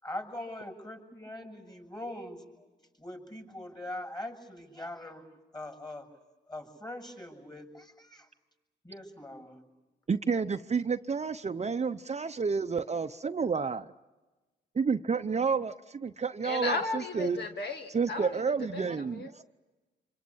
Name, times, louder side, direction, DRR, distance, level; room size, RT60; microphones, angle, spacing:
voice 1, 0.0-2.7 3.0-5.2 5.5-6.1 6.5-8.3 8.8-9.6, left 1 dB, 20° left, 4 dB, 7.2 m, -42 dB
voice 2, 10.1-13.9 14.7-17.4 17.9-19.4, right 5 dB, 35° right, 9 dB, 0.8 m, -30 dB
voice 3, 16.4-18.4 18.7-19.3, left 3 dB, 60° left, 4 dB, 1.7 m, -35 dB
27.0 x 25.0 x 7.3 m, 1.2 s
cardioid pair, 70°, 19 cm